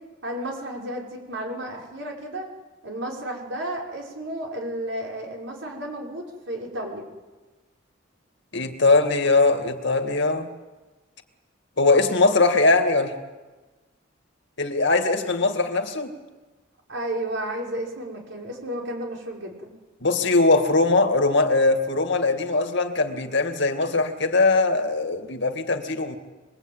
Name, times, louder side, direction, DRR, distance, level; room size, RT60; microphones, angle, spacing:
voice 1, 0.2-2.5 2.8-7.1 16.9-19.7, right 1 dB, 70° right, 6.0 m, -32 dB
voice 2, 8.5-10.5 11.8-13.2 14.6-16.2 20.0-26.2, left 3 dB, 65° left, 2.4 m, -21 dB
26.0 x 21.0 x 9.1 m
head